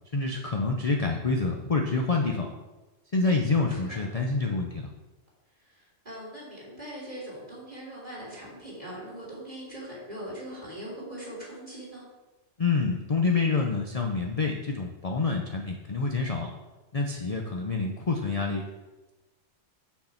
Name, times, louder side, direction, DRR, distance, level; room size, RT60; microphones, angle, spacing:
voice 1, 0.1-2.5 3.1-4.9 12.6-16.5 16.9-18.6, left 3 dB, 35° left, 1 dB, 0.7 m, -27 dB
voice 2, 3.4-3.8 5.7-12.0, right 1 dB, 35° right, -6 dB, 3.3 m, -41 dB
6.7 x 5.9 x 5.8 m, 1.1 s
omnidirectional pair, 1.3 m